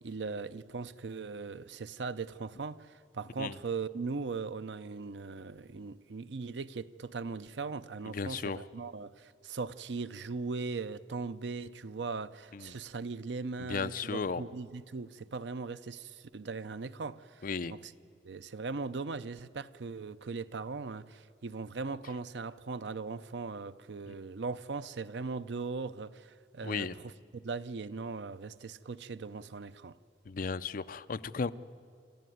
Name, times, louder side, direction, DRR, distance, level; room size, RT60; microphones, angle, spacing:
voice 1, 0.0-17.9 18.2-29.9, right 4 dB, 80° right, 0.6 m, -39 dB
voice 2, 8.1-8.6 12.5-12.8 13.7-14.4 17.4-17.7 24.1-24.2 26.6-26.9 30.3-31.5, left 5 dB, 50° left, 0.5 m, -35 dB
28.0 x 13.5 x 9.3 m
head